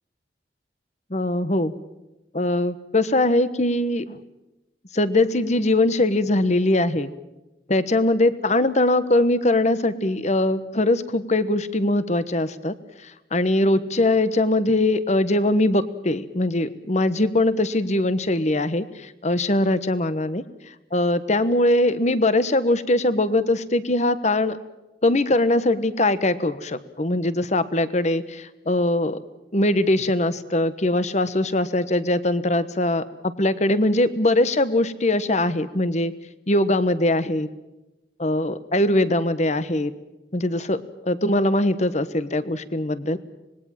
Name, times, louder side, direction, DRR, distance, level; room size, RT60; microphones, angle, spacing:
voice 1, 1.1-1.7 2.3-4.2 4.9-7.1 7.7-12.7 13.3-20.4 20.9-24.6 25.0-29.2 29.5-36.1 36.5-37.5 38.2-39.9 40.3-40.8 41.1-43.2, left 1 dB, 40° left, 14 dB, 1.2 m, -21 dB
26.0 x 20.5 x 7.5 m, 1.0 s
head